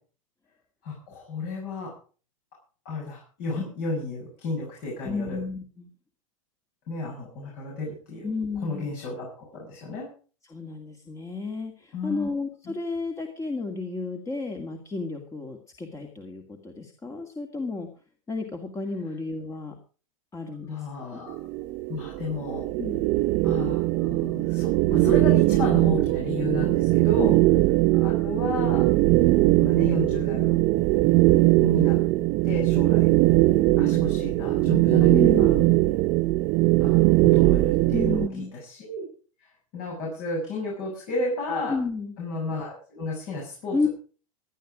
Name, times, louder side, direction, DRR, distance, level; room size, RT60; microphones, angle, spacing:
voice 1, 0.8-1.9 2.9-5.4 6.9-8.3 8.6-10.1 11.9-12.3 12.7-12.8 20.7-21.3 21.9-22.6 23.4-27.4 27.9-28.8 29.6-30.6 31.6-32.0 32.4-33.1 33.8-35.5 36.8-39.1 39.4-39.5 39.7-41.7 42.2-43.9, left 2 dB, 55° left, -2 dB, 7.3 m, -32 dB
voice 2, 5.0-5.9 8.2-8.9 10.5-17.9 18.3-19.7 20.3-21.2 22.8-23.1 27.2-27.3 33.8-34.0 35.1-35.8 37.9-38.5 41.7-42.2 43.7-43.9, left 3 dB, 20° left, 4 dB, 2.2 m, -32 dB
sound 1, 21.3-38.3, right 19 dB, 45° right, 0.6 m, -21 dB
17.0 x 11.5 x 5.0 m, 0.39 s
hypercardioid pair, 95°, 17 cm